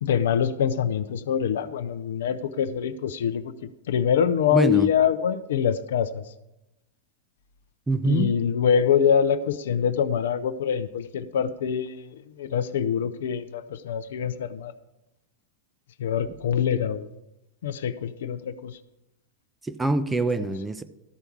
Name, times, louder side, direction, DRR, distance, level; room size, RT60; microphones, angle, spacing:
voice 1, 0.0-6.2 8.1-14.7 16.0-17.1 17.6-18.8 20.4-20.5, left 8 dB, 60° left, 11 dB, 0.5 m, -25 dB
voice 2, 4.5-4.9 7.9-8.3 19.6-20.8, right 2 dB, 10° right, 11 dB, 0.6 m, -24 dB
13.0 x 4.5 x 6.9 m, 0.94 s
figure-of-eight pair, 90°, 0 cm